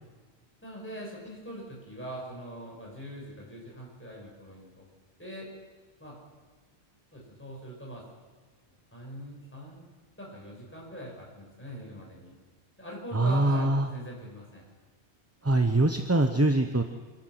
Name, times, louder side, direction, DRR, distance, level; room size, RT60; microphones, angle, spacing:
voice 1, 0.6-4.8 5.2-5.5 6.0-6.2 7.1-8.0 8.9-9.9 10.2-12.3 12.8-14.6, equal, 10° left, -3 dB, 6.0 m, -42 dB
voice 2, 13.1-13.9 15.4-16.8, right 2 dB, 15° right, 6 dB, 0.8 m, -23 dB
26.5 x 12.0 x 8.1 m, 1.4 s
omnidirectional pair, 1.2 m